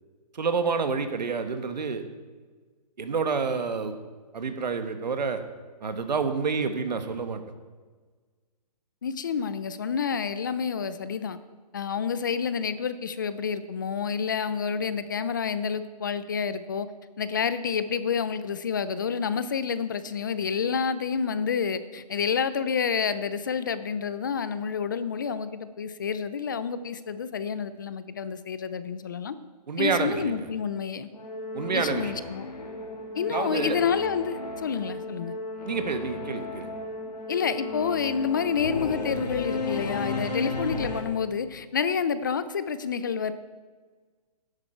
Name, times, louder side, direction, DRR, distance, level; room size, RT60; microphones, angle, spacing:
voice 1, 0.3-2.0 3.0-4.0 4.3-5.4 5.8-7.4 29.7-30.3 31.5-32.2 33.3-33.8 35.6-36.7, right 5 dB, 90° right, 8 dB, 1.5 m, -28 dB
voice 2, 9.0-11.4 11.7-16.9 17.2-29.4 29.8-31.1 31.7-32.5 33.1-35.3 37.3-43.3, left 6 dB, 30° left, 13 dB, 0.4 m, -29 dB
Singing / Musical instrument, 31.1-41.0, left 3 dB, 75° left, 2.6 m, -34 dB
12.5 x 10.5 x 4.5 m, 1.4 s
hypercardioid pair, 170°, 21 cm